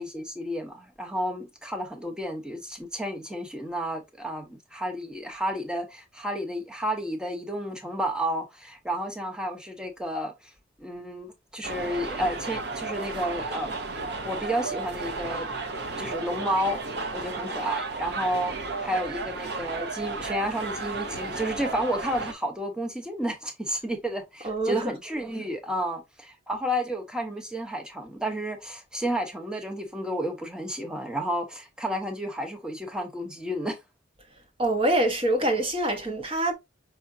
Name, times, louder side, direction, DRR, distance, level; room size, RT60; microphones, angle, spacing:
voice 1, 0.0-10.3 10.8-13.7 14.2-15.5 16.0-16.8 17.1-33.8, equal, 5° right, 0.8 m, -31 dB
sound 1, 11.6-22.3, right 3 dB, 60° right, 0.8 m, -33 dB
voice 2, 24.4-24.9 34.6-36.5, right 1 dB, 30° right, 1.0 m, -25 dB
5.6 x 3.5 x 2.6 m
head